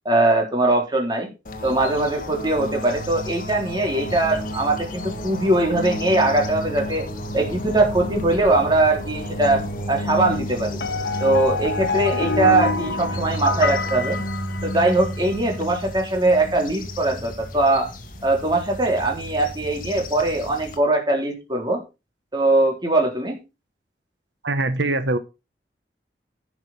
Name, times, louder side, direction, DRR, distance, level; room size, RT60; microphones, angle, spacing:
voice 1, 0.1-1.3 1.6-7.1 7.3-10.8 11.2-14.2 14.6-17.9 18.2-21.8 22.3-23.4, right 2 dB, 25° right, 1 dB, 3.8 m, -21 dB
sound 1, 1.5-20.8, equal, 50° left, 1.7 m, -32 dB
sound 2, 4.0-14.3, equal, 20° left, 4.1 m, -38 dB
sound 3, 10.8-15.1, left 4 dB, 75° left, 1.8 m, -26 dB
voice 2, 24.4-25.2, right 2 dB, 90° right, 11 dB, 1.1 m, -22 dB
11.5 x 6.1 x 5.8 m, 0.28 s
head